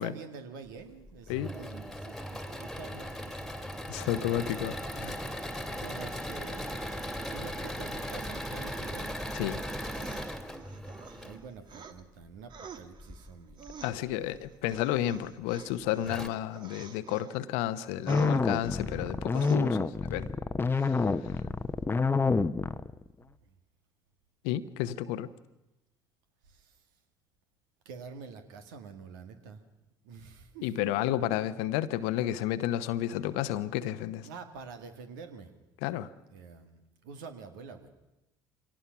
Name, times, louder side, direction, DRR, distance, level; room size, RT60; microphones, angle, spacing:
voice 1, 0.0-3.5 4.2-4.5 5.0-7.0 7.3-9.2 10.7-13.7 18.8-19.2 23.5-23.6 26.5-26.8 27.9-29.6 30.0-31.4 34.2-35.5 36.3-37.9, right 5 dB, 75° right, 2.0 m, -47 dB
Engine / Mechanisms, 1.1-11.4 13.0-13.7 14.3-14.4 14.7-14.8 15.7-15.8 16.1-16.3, equal, ahead, 2.4 m, -38 dB
voice 2, 3.9-4.8 9.3-9.6 13.8-20.3 20.7-21.0 24.4-25.3 30.6-34.3 35.8-36.1, left 13 dB, 70° left, 0.9 m, -31 dB
sound 1, 9.9-12.0 12.5-17.4 17.8-19.1 19.3-19.6, right 6 dB, 45° right, 1.6 m, -49 dB
sound 2, 18.1-23.0, left 4 dB, 20° left, 0.9 m, -27 dB
24.5 x 18.0 x 6.0 m
hypercardioid pair, 60°, 11 cm